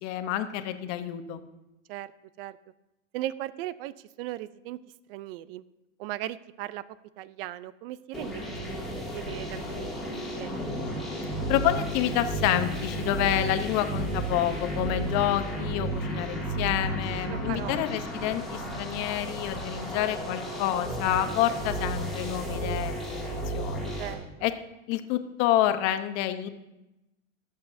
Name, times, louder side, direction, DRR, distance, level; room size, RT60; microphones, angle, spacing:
voice 1, 0.0-1.4 11.5-23.9 24.4-24.5 24.9-26.5, left 12 dB, 40° left, 9 dB, 0.9 m, -28 dB
voice 2, 3.1-4.8 5.1-5.6 6.0-6.8 7.2-8.4 8.7-8.8 9.1-10.6 17.3-17.8 24.0-24.2, right 14 dB, 45° right, 17 dB, 0.5 m, -37 dB
sound 1, 8.1-24.1, right 1 dB, ahead, 2.3 m, -33 dB
22.5 x 8.1 x 2.7 m, 0.95 s
hypercardioid pair, 130°, 39 cm